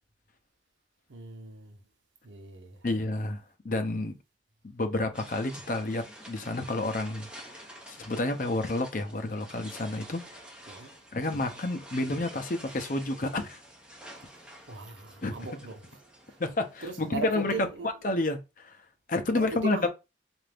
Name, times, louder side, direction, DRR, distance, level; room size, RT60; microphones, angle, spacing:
voice 1, 1.1-1.8 2.2-2.9 10.7-11.0 14.7-16.0 16.3-16.4 16.8-17.9 19.4-19.9, right 3 dB, 90° right, 0.8 m, -39 dB
voice 2, 2.8-4.1 4.6-10.2 11.1-13.6 15.2-15.4 16.4-17.7 18.0-18.8 19.1-19.9, left 2 dB, 45° left, 0.6 m, -30 dB
sound 1, 5.1-17.6, equal, 5° right, 0.6 m, -49 dB
3.8 x 2.5 x 3.4 m
head